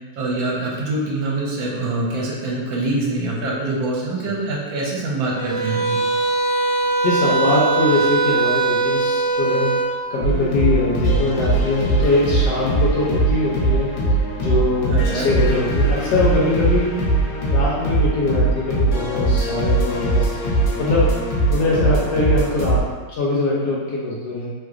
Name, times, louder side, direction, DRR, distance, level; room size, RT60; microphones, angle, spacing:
voice 1, 0.2-6.0 14.9-15.3, right 2 dB, 80° right, -3 dB, 1.4 m, -24 dB
sound 1, 5.3-9.9, right 3 dB, 15° right, 1.0 m, -20 dB
voice 2, 7.0-9.7 10.1-13.9 14.4-16.9 17.5-20.3 20.8-21.1 21.5-22.8 23.2-24.5, left 2 dB, 70° left, -6 dB, 1.0 m, -22 dB
sound 2, 10.2-22.8, right 2 dB, 85° left, 0.6 m, -20 dB
3.1 x 2.8 x 2.4 m, 1.4 s
omnidirectional pair, 2.1 m